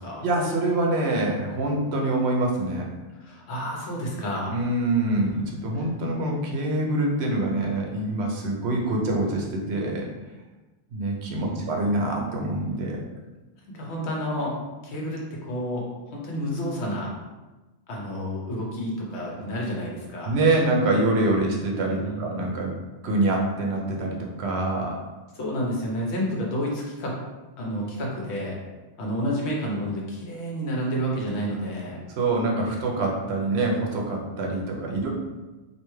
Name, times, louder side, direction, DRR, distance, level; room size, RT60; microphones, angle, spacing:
voice 1, 0.2-2.9 4.5-10.1 10.9-13.0 20.2-22.7 23.0-25.0 32.2-35.1, right 2 dB, 65° right, 0 dB, 0.8 m, -25 dB
voice 2, 3.2-4.5 5.2-5.4 5.7-5.9 11.4-11.7 13.7-14.5 14.8-17.1 17.9-20.3 21.9-22.4 25.4-27.1 27.6-28.6 29.0-32.0 34.9-35.1, equal, 65° left, -2 dB, 1.1 m, -30 dB
3.3 x 2.6 x 3.1 m, 1.1 s
omnidirectional pair, 1.2 m